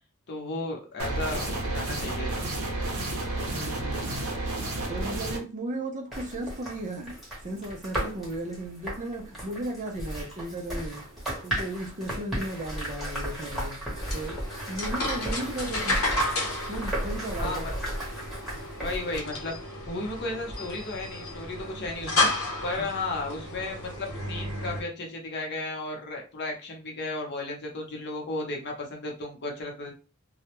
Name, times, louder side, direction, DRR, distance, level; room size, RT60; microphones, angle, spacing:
voice 1, 0.3-2.4 17.4-17.7 18.8-19.5 19.8-29.9, left 2 dB, 55° left, 0.7 m, -34 dB
sound 1, 1.0-5.4, right 2 dB, 75° right, 0.8 m, -31 dB
voice 2, 3.4-4.3 4.9-11.1 11.4-13.8 14.1-14.4 14.7-16.0 16.7-17.6 22.8-22.9, right 1 dB, 35° right, 0.5 m, -35 dB
sound 2, 6.1-19.2, right 1 dB, ahead, 0.9 m, -35 dB
sound 3, 13.9-24.8, left 2 dB, 80° left, 0.9 m, -32 dB
2.2 x 2.0 x 2.9 m
head